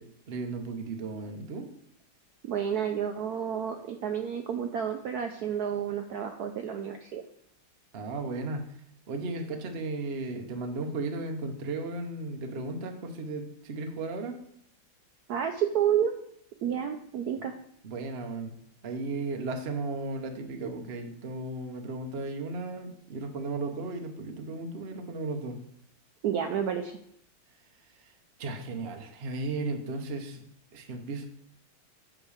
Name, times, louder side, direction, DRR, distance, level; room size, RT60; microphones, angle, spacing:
voice 1, 0.0-1.7 7.9-8.7 9.1-14.4 17.8-18.5 18.8-25.6 28.4-30.4 30.7-31.3, right 3 dB, 50° right, 4 dB, 0.8 m, -35 dB
voice 2, 2.4-7.2 15.3-16.1 16.6-17.5 26.2-27.0, right 8 dB, 75° right, 6 dB, 0.9 m, -30 dB
8.3 x 3.7 x 6.4 m, 0.67 s
omnidirectional pair, 2.2 m